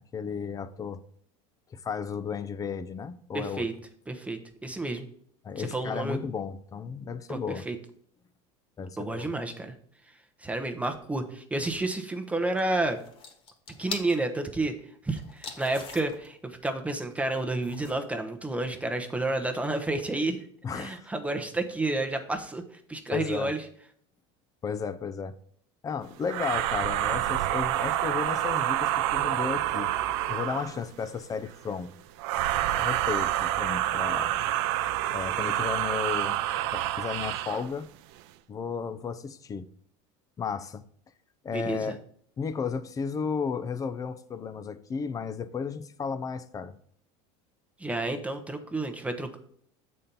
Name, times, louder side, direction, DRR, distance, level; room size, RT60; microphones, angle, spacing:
voice 1, 0.1-1.0 1.7-3.7 5.4-7.7 8.8-9.3 20.6-21.1 23.1-23.5 24.6-25.3 25.8-29.9 30.3-31.9 32.6-34.3 35.1-36.4 36.7-37.9 38.5-39.7 40.4-40.8 41.4-42.0 42.4-46.7, left 6 dB, 25° left, 0.5 m, -34 dB
voice 2, 3.3-3.7 4.1-5.1 5.6-6.2 7.3-7.8 9.0-9.7 10.4-13.0 13.8-14.7 15.0-20.4 20.7-22.6 22.9-23.6 41.5-42.0 47.8-49.4, right 2 dB, 10° right, 0.8 m, -30 dB
sound 1, 12.6-14.2 15.2-16.3 17.6-17.9, left 4 dB, 40° left, 1.4 m, -41 dB
sound 2, 26.3-30.8 32.2-37.7, right 13 dB, 75° right, 0.5 m, -28 dB
7.3 x 4.3 x 5.3 m
supercardioid pair, 125°, 15 cm